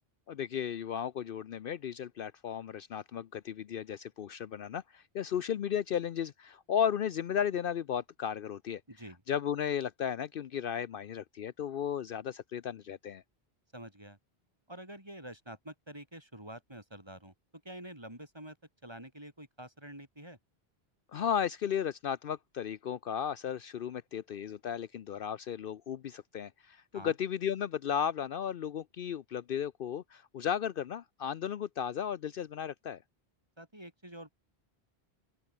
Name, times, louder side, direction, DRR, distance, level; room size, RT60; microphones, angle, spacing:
voice 1, 0.3-8.8 9.3-13.2 21.1-33.0, left 8 dB, 65° left, 0.8 m, -35 dB
voice 2, 8.9-9.2 13.7-14.2 14.7-17.3 17.6-18.6 18.8-20.4 26.9-27.1 33.6-34.3, right 1 dB, 25° right, 4.8 m, -47 dB
open air
omnidirectional pair, 1.1 m